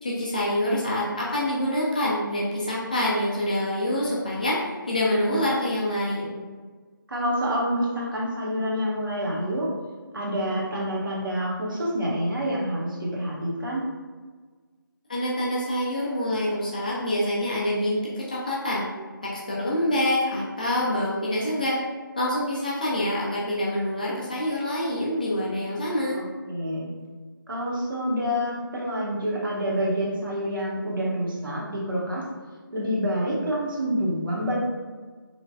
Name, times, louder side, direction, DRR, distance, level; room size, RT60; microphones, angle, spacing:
voice 1, 0.0-6.3 15.1-18.8 19.2-21.8 22.2-26.2, left 1 dB, 20° left, -5 dB, 0.3 m, -26 dB
voice 2, 7.1-9.7 10.1-13.8 26.1-26.9 27.5-32.2 32.7-34.6, equal, 65° right, -4 dB, 0.9 m, -27 dB
3.0 x 2.2 x 2.6 m, 1.4 s
figure-of-eight pair, 160°, 12 cm